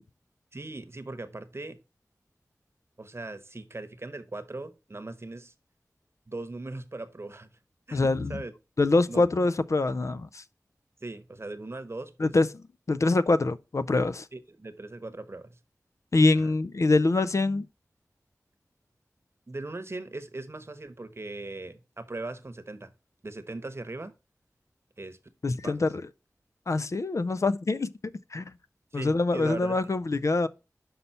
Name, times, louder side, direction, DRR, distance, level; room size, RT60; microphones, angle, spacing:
voice 1, 0.5-1.8 3.0-5.5 6.3-7.5 7.9-8.5 9.1-9.2 11.0-12.3 14.3-15.6 16.3-16.5 19.5-22.9 23.2-24.1 25.0-25.2 25.6-25.8 28.9-29.8, right 2 dB, 45° right, 0.9 m, -39 dB
voice 2, 7.9-8.4 8.8-10.4 12.2-14.3 16.1-17.7 25.4-26.0 26.7-27.9 28.3-28.6 28.9-30.5, left 3 dB, 60° left, 0.4 m, -25 dB
5.6 x 5.5 x 4.1 m
wide cardioid pair, 55°, 6 cm